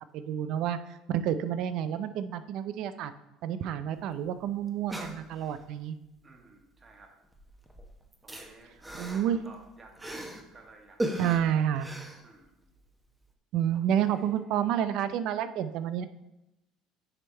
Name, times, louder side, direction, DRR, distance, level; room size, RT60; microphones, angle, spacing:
voice 1, 0.1-0.8 1.1-3.1 3.4-6.0 9.0-9.4 11.2-11.9 13.5-16.1, right 9 dB, 65° right, 12 dB, 0.5 m, -29 dB
sound 1, 4.0-4.1 4.3-4.4 4.7-5.7 6.8-7.0 7.3-10.5 11.0-12.8 13.2-13.3, right 1 dB, 10° right, 1.0 m, -38 dB
voice 2, 6.2-7.1 8.2-8.7 9.1-11.7 12.2-12.6 13.7-14.4, right 2 dB, 30° right, 1 dB, 1.7 m, -54 dB
9.6 x 3.4 x 4.4 m, 0.92 s
supercardioid pair, 95°, 0 cm